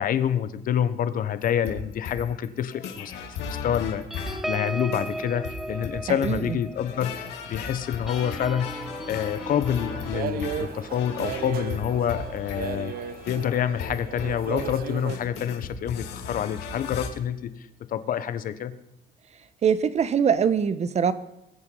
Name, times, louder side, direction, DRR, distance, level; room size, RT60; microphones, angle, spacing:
voice 1, 0.0-3.1 3.4-7.1 7.5-18.7, left 9 dB, 55° left, 13 dB, 1.1 m, -27 dB
sound 1, 1.4-17.1, left 6 dB, 90° left, 2.6 m, -37 dB
sound 2, 4.1-13.0 13.5-13.7 14.0-14.3, right 1 dB, ahead, 0.7 m, -38 dB
sound 3, 9.7-15.2, right 9 dB, 60° right, 0.9 m, -35 dB
voice 2, 19.6-21.1, right 7 dB, 40° right, 14 dB, 1.1 m, -22 dB
21.0 x 8.0 x 5.5 m, 0.88 s
cardioid pair, 110°, 17 cm